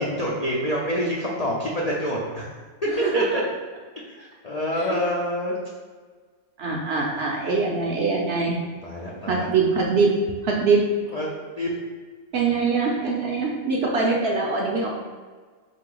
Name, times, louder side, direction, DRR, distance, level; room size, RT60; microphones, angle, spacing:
voice 1, 0.2-2.4 3.1-3.4 4.1-5.5 8.8-9.5 11.1-11.3 11.6-11.7, equal, 65° left, -4 dB, 0.4 m, -27 dB
voice 2, 2.9-3.4 4.8-4.9 6.6-8.6 9.3-10.1 10.4-10.8 12.3-14.9, right 4 dB, 60° right, -2 dB, 0.7 m, -23 dB
4.3 x 2.7 x 3.8 m, 1.5 s
omnidirectional pair, 1.5 m